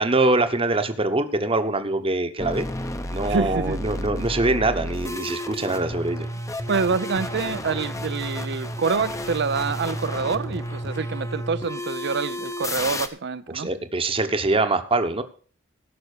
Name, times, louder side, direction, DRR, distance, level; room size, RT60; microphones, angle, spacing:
voice 1, 0.0-2.7 3.1-6.3 13.5-15.2, right 2 dB, 25° right, 1.1 m, -23 dB
sound 1, 2.4-13.1, left 1 dB, 15° left, 0.8 m, -31 dB
voice 2, 3.3-3.8 6.7-13.7, right 5 dB, 55° right, 0.6 m, -26 dB
16.5 x 6.0 x 6.6 m
head